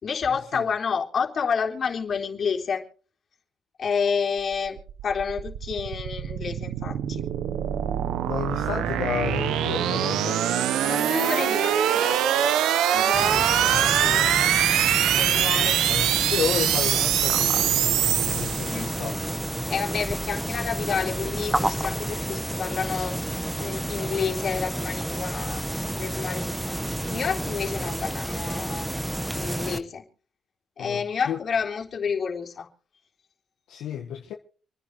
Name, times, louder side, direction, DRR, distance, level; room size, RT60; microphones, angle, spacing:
voice 1, 0.0-2.8 3.8-7.3 10.8-12.2 12.9-14.4 15.1-15.8 18.7-18.9 19.7-23.2 23.6-25.6 26.0-28.9 29.3-30.0 30.8-32.7, left 6 dB, 55° left, 3.7 m, -29 dB
sound 1, 4.5-19.1, right 11 dB, 85° right, 1.0 m, -24 dB
voice 2, 8.2-10.5 13.6-13.9 15.9-19.2 30.8-31.4 33.7-34.3, left 8 dB, 85° left, 1.6 m, -31 dB
sound 2, 13.1-29.8, right 1 dB, 10° right, 1.3 m, -30 dB
27.5 x 10.0 x 3.2 m
cardioid pair, 70°, 0 cm